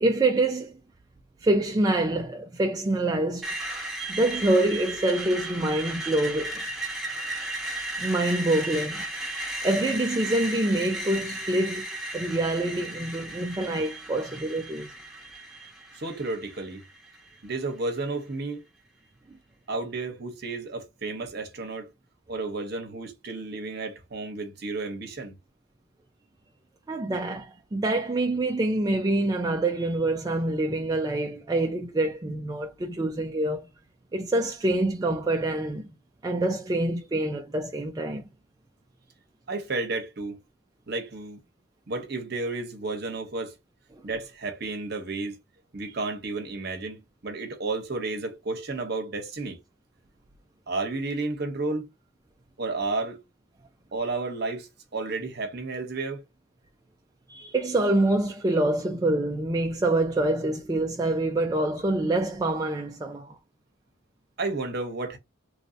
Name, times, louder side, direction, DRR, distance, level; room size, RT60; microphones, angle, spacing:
voice 1, 0.0-0.7 1.4-3.5 4.1-6.6 8.0-9.0 9.6-11.9 12.1-14.9 26.9-33.7 34.1-35.8 36.2-38.2 57.3-63.4, right 2 dB, 20° right, 0.3 m, -26 dB
Screech, 3.4-17.4, right 1 dB, ahead, 1.0 m, -35 dB
voice 2, 15.9-16.8 17.4-18.6 19.7-21.9 22.3-25.4 39.5-40.4 40.9-41.4 41.9-43.5 44.0-45.4 45.7-49.6 50.7-51.8 52.6-53.2 53.9-56.2 64.4-65.2, right 3 dB, 50° right, 0.9 m, -32 dB
3.1 x 2.6 x 2.6 m
head